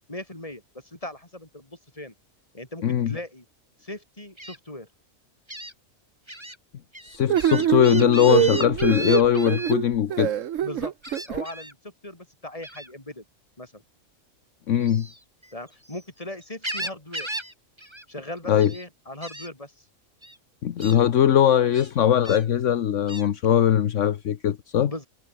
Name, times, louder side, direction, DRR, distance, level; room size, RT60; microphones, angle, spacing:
voice 1, 0.1-2.1 2.5-3.4 3.8-4.9 10.6-10.9 11.3-13.2 13.6-13.8 15.5-17.3 18.1-19.8 24.8-25.1, left 1 dB, 25° left, 4.6 m, -38 dB
voice 2, 2.8-3.1 7.0-10.3 14.7-15.1 18.5-18.7 20.6-24.9, left 10 dB, 65° left, 1.2 m, -20 dB
Gull seagull, 4.4-4.6 5.5-5.7 6.3-6.6 6.9-9.7 11.0-11.7 12.6-12.9 14.8-16.0 16.4-17.5 17.8-18.1 18.4-18.8 19.2-19.5 20.2-20.4 20.8-21.0 21.7-22.4 23.1-23.3, right 1 dB, 20° right, 5.8 m, -36 dB
sound 1, 7.3-11.4, right 10 dB, 70° right, 1.2 m, -24 dB
omnidirectional pair, 1.4 m